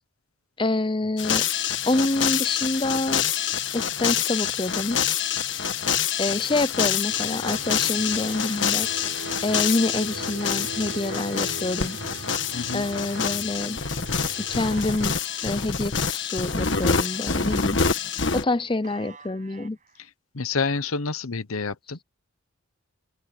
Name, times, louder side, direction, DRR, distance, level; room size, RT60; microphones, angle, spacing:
voice 1, 0.6-1.5 1.9-3.3 3.7-5.0 6.2-9.1 9.4-12.0 12.7-13.8 14.4-15.1 15.4-17.8 18.3-19.8, left 2 dB, 25° left, 0.6 m, -27 dB
sound 1, 1.2-18.4, left 7 dB, 60° left, 1.5 m, -26 dB
sound 2, 7.1-15.4, right 2 dB, 65° right, 7.9 m, -39 dB
sound 3, 8.2-9.2 9.8-15.6 16.0-18.0 18.3-20.1, right 5 dB, 35° right, 6.7 m, -50 dB
voice 2, 12.5-12.9 20.3-22.0, left 4 dB, 85° left, 1.0 m, -28 dB
open air
head